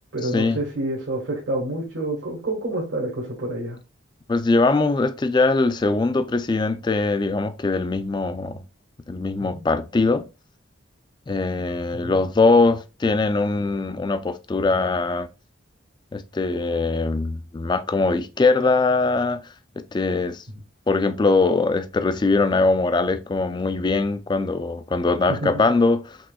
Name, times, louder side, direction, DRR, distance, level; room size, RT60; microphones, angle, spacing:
voice 1, 0.1-3.8 9.5-9.6 11.9-12.2 20.5-20.6 25.3-25.6, right 1 dB, 75° right, 1.5 m, -28 dB
voice 2, 4.3-8.6 9.1-10.2 11.3-15.3 16.1-19.4 19.9-20.4 20.9-26.2, left 3 dB, 20° left, 0.3 m, -21 dB
5.9 x 3.0 x 2.2 m
head